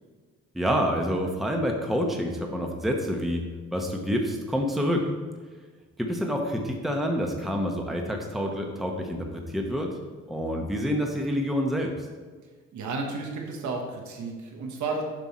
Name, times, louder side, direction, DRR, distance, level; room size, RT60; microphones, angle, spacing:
voice 1, 0.5-3.4 3.7-5.1 6.0-9.9 10.3-12.1, equal, ahead, 1 dB, 0.9 m, -27 dB
voice 2, 12.7-15.0, right 3 dB, 70° right, 1 dB, 1.3 m, -32 dB
7.7 x 5.8 x 4.3 m, 1.4 s
cardioid pair, 90°, 30 cm